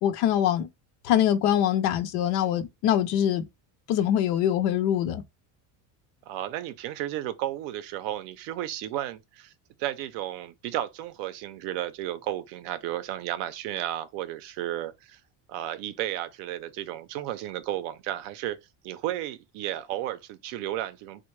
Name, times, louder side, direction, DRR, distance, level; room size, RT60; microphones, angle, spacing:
voice 1, 0.0-0.7 1.0-3.4 3.9-5.2, left 10 dB, 60° left, 0.5 m, -24 dB
voice 2, 6.3-9.5 9.8-15.2 15.5-18.6 18.8-21.2, right 13 dB, 65° right, 0.5 m, -33 dB
3.5 x 2.2 x 3.1 m
cardioid pair, 175°, 45 cm